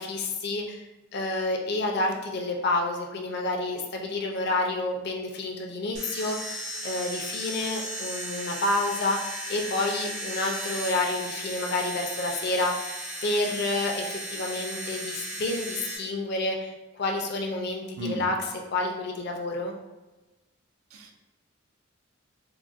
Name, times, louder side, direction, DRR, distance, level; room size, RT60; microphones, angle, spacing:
voice 1, 0.0-6.6 6.8-12.9 13.2-19.7, left 2 dB, 50° left, 1 dB, 0.4 m, -29 dB
sound 1, 5.9-16.0, right 1 dB, 35° right, 0.5 m, -36 dB
voice 2, 18.0-18.3 20.9-21.1, right 1 dB, 80° right, 3 dB, 0.4 m, -35 dB
3.8 x 2.1 x 2.4 m, 1.1 s
head